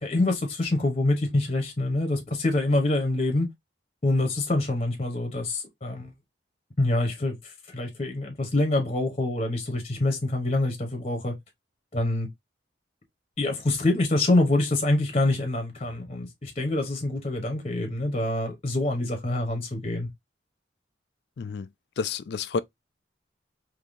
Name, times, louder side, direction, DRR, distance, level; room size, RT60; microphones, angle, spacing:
voice 1, 0.0-3.5 4.0-6.1 6.8-7.3 7.7-11.3 11.9-12.3 13.4-20.1, left 2 dB, 30° left, 1.0 m, -25 dB
voice 2, 22.0-22.6, left 5 dB, 60° left, 0.3 m, -29 dB
3.6 x 2.8 x 2.5 m
head